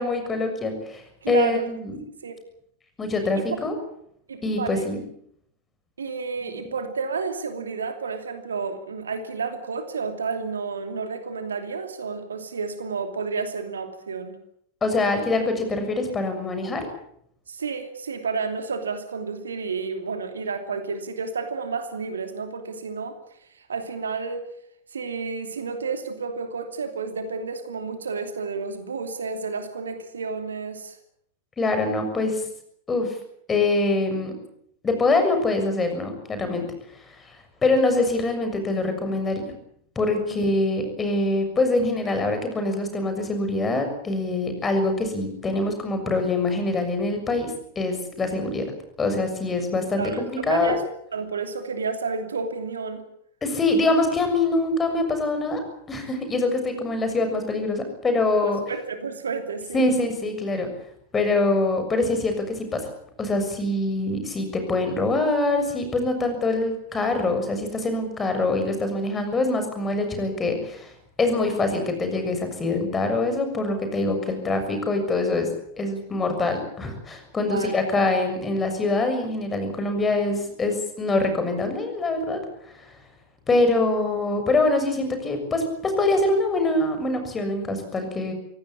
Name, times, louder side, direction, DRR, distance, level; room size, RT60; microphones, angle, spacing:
voice 1, 0.0-2.0 3.0-3.8 4.4-5.0 14.8-16.9 31.6-32.4 32.9-33.1 33.5-34.3 34.8-36.7 37.6-39.4 40.0-48.6 49.0-50.8 53.4-55.6 55.9-58.6 59.7-60.7 61.1-62.9 63.2-70.9 71.2-75.5 75.8-82.4 82.7-82.8 83.5-88.3, left 2 dB, 15° left, 6 dB, 6.8 m, -24 dB
voice 2, 1.2-1.6 2.2-2.4 4.3-4.9 6.0-14.4 17.5-23.2 23.6-24.5 24.9-31.0 40.3-40.4 50.0-50.8 51.1-53.0 58.4-59.9 77.4-78.2, right 4 dB, 70° right, 7 dB, 2.8 m, -31 dB
24.5 x 17.5 x 8.7 m, 0.70 s
figure-of-eight pair, 90°, 0 cm